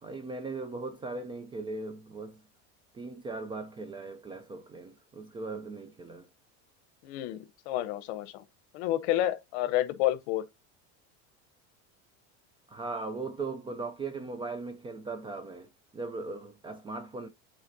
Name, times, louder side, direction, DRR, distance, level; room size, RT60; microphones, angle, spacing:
voice 1, 0.0-2.4 2.9-6.3 12.7-17.3, right 3 dB, 15° right, 0.4 m, -38 dB
voice 2, 7.0-8.4 8.7-10.5, left 13 dB, 70° left, 0.9 m, -30 dB
8.7 x 4.2 x 2.6 m
supercardioid pair, 150°, 35 cm